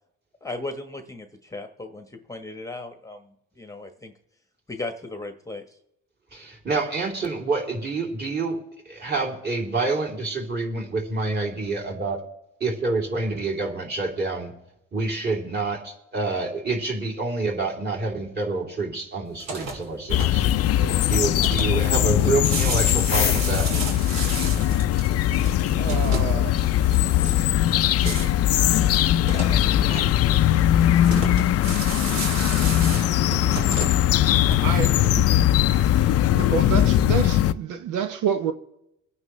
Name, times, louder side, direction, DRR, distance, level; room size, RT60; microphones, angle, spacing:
voice 1, 0.4-4.1 4.7-5.8, left 2 dB, 10° left, 1.1 m, -36 dB
voice 2, 6.3-12.2 12.6-14.5 14.9-20.5 21.1-23.7, right 3 dB, 35° right, 3.1 m, -27 dB
sound 1, 19.3-35.0, right 3 dB, 60° right, 3.0 m, -34 dB
sound 2, 20.1-37.5, left 12 dB, 50° left, 0.5 m, -20 dB
voice 3, 25.7-27.1 28.2-28.3 30.3-31.7 34.2-38.5, right 7 dB, 75° right, 0.9 m, -31 dB
23.5 x 9.6 x 3.2 m
cardioid pair, 115°, 31 cm